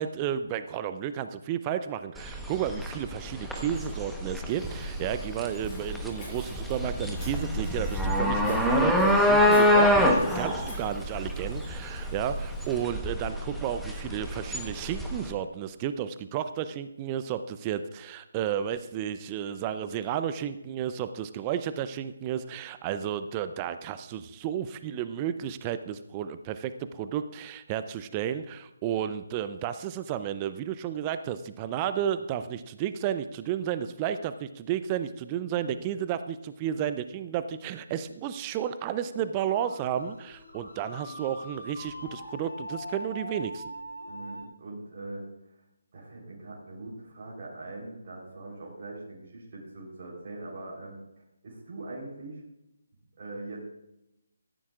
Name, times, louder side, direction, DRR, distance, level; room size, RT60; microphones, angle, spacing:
voice 1, 0.0-43.7, right 9 dB, 20° right, 11 dB, 0.5 m, -32 dB
sound 1, 2.2-15.3, left 1 dB, ahead, 1.1 m, -26 dB
Walk footsteps, 4.5-12.8, left 1 dB, 15° left, 5.4 m, -49 dB
sound 2, 38.9-44.4, left 1 dB, 65° left, 5.4 m, -42 dB
voice 2, 44.1-45.2 45.9-51.0 51.4-52.4 53.2-53.6, right 2 dB, 40° right, -5 dB, 3.7 m, -41 dB
17.5 x 14.0 x 2.4 m, 0.87 s
figure-of-eight pair, 145°, 0 cm